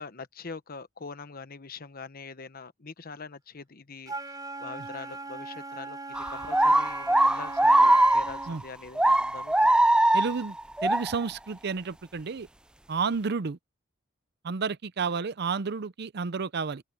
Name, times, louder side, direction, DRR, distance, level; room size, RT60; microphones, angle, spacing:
voice 1, 0.0-9.7, left 4 dB, 50° left, 1.0 m, -43 dB
Wind instrument woodwind instrument, 4.1-8.6, right 3 dB, 20° right, 3.1 m, -39 dB
sound 1, 6.1-8.6 8.9-11.1, right 1 dB, 5° right, 0.3 m, -21 dB
voice 2, 10.1-10.6 10.8-12.5 12.9-13.6 14.4-16.8, right 5 dB, 55° right, 0.6 m, -31 dB
open air
head